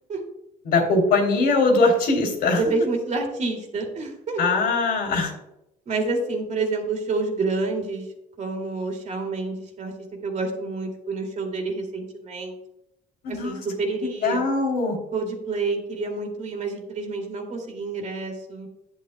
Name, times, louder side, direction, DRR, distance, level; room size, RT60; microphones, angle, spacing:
voice 1, 0.6-2.7 4.4-5.3 13.2-13.6 14.2-15.0, left 3 dB, 70° left, 2 dB, 3.1 m, -21 dB
voice 2, 2.5-4.5 5.9-8.1 8.4-9.9 10.2-12.6 13.3-14.4 15.1-18.7, right 3 dB, 45° right, 2 dB, 2.4 m, -28 dB
10.0 x 9.0 x 2.2 m, 0.85 s
cardioid pair, 110°, 17 cm